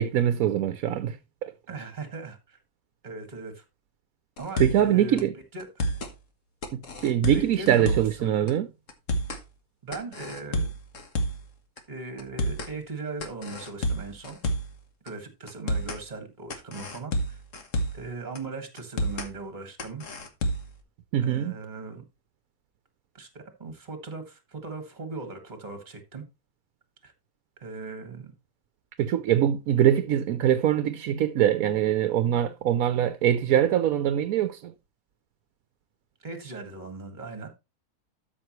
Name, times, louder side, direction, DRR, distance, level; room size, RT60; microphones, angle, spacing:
voice 1, 0.0-1.5 4.6-5.3 6.7-8.7 21.1-21.5 29.0-34.7, right 10 dB, 70° right, 1.1 m, -23 dB
voice 2, 1.7-2.6 3.0-3.6 4.4-5.7 7.3-8.5 9.8-10.7 11.9-14.4 15.0-17.4 17.9-20.0 21.2-22.0 23.1-26.2 27.0-27.1 27.6-28.3 36.2-37.5, right 3 dB, 30° right, 2.0 m, -38 dB
sound 1, 4.4-4.9 5.2-5.3 5.6-6.1 6.6-8.2 8.5-8.6 8.9-9.4 9.9-11.5 11.8-11.9 12.2-12.7 13.2-14.8 15.1-15.2 15.5-16.0 16.5-18.1 18.4-18.5 18.8-19.3 19.8-20.8, equal, 55° left, 1.6 m, -30 dB
12.5 x 6.0 x 3.1 m
omnidirectional pair, 1.6 m